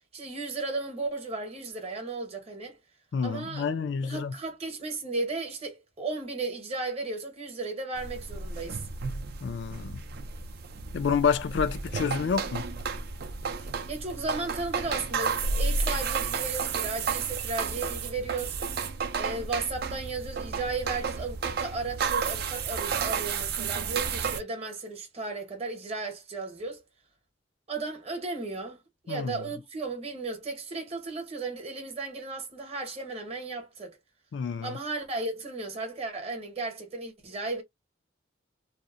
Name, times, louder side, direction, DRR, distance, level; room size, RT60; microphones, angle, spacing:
voice 1, 0.1-2.8 3.2-8.8 13.9-18.6 19.1-26.8 27.7-34.0 34.6-37.6, right 3 dB, 30° right, 0.8 m, -35 dB
voice 2, 3.1-4.3 9.4-10.0 10.9-12.7 29.1-29.4 34.3-34.7, left 6 dB, 65° left, 0.3 m, -28 dB
sound 1, 8.0-24.4, right 5 dB, 50° right, 0.4 m, -32 dB
2.7 x 2.0 x 2.4 m
head